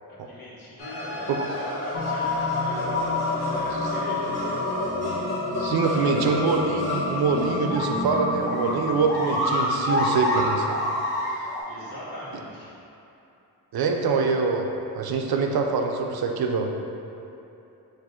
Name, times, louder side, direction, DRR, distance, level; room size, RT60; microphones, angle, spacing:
voice 1, 0.1-4.9 5.6-6.3 9.2-9.9 11.6-12.8, equal, 65° left, -8 dB, 1.5 m, -40 dB
sound 1, 0.8-11.6, left 1 dB, 80° left, 1.1 m, -29 dB
sound 2, 1.9-9.0, left 3 dB, 35° left, 0.5 m, -30 dB
voice 2, 5.6-10.7 11.4-11.5 13.7-14.7 15.0-16.7, right 4 dB, 75° right, 3 dB, 0.5 m, -24 dB
4.2 x 2.6 x 4.3 m, 2.8 s
cardioid pair, 60°, 38 cm